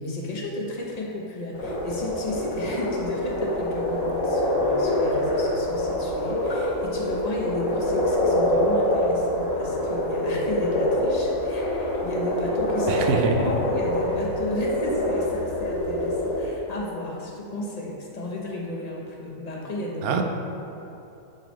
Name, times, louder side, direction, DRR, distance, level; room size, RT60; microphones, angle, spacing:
voice 1, 0.0-20.2, left 1 dB, 35° left, -3 dB, 0.7 m, -33 dB
sound 1, 1.6-16.5, left 1 dB, 65° left, 1.5 m, -25 dB
voice 2, 12.9-13.4 20.0-20.2, right 5 dB, 75° right, 3 dB, 1.0 m, -23 dB
7.9 x 4.7 x 3.1 m, 2.8 s
omnidirectional pair, 1.6 m